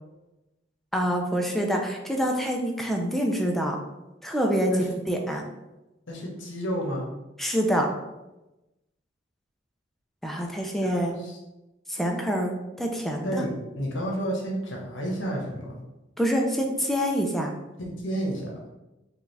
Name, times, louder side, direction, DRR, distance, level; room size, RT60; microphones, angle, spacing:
voice 1, 0.9-3.8 4.2-4.7 5.1-5.4 7.4-7.9 10.2-11.1 11.9-13.5 16.2-17.5, equal, ahead, 1 dB, 0.5 m, -26 dB
voice 2, 6.1-7.1 10.8-11.4 13.2-13.5 13.8-15.8 17.8-18.7, equal, 70° left, -1 dB, 1.1 m, -31 dB
4.8 x 2.4 x 3.3 m, 1.0 s
head